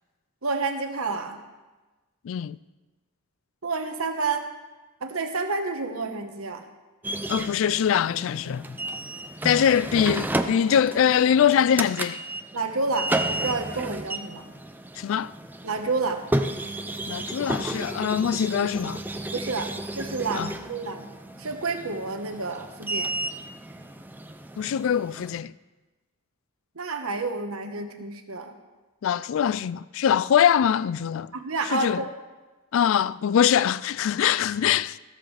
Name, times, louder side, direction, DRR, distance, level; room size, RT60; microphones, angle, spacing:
voice 1, 0.4-1.4 3.6-4.5 5.0-6.6 12.5-14.5 15.6-16.2 19.3-21.1 21.4-23.2 26.7-28.5 31.3-32.1, right 3 dB, 80° right, 1.3 m, -29 dB
voice 2, 2.2-2.6 7.3-8.8 9.4-12.2 15.0-15.3 17.1-19.0 20.3-20.5 24.6-25.5 29.0-31.3 31.7-32.0 32.7-35.0, left 8 dB, 65° left, 0.3 m, -23 dB
sound 1, 7.0-25.4, right 1 dB, 10° right, 0.5 m, -33 dB
14.0 x 13.5 x 3.4 m
head